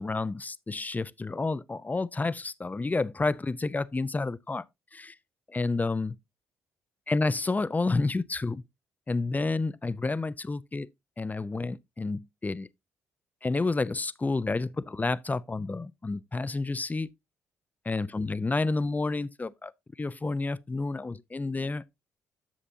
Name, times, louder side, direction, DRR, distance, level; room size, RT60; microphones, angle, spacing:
voice 1, 0.0-4.6 4.9-5.1 5.5-6.2 7.1-8.6 9.1-10.9 11.2-12.7 13.4-17.1 17.9-19.7 20.0-22.0, left 3 dB, 25° left, 0.7 m, -30 dB
10.0 x 7.4 x 2.7 m
hypercardioid pair, 45°, 7 cm